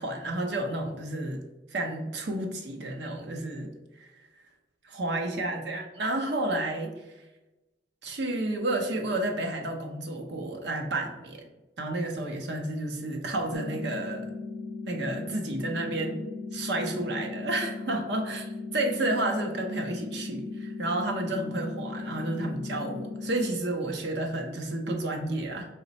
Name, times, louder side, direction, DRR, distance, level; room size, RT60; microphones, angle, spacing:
voice 1, 0.0-1.4 1.7-3.7 4.0-4.1 4.8-6.9 8.0-11.4 11.8-14.3 14.9-25.7, right 2 dB, 65° right, 2 dB, 0.7 m, -31 dB
sound 1, 13.5-23.5, left 3 dB, 85° left, 0.4 m, -37 dB
5.0 x 2.2 x 4.0 m, 1.0 s
head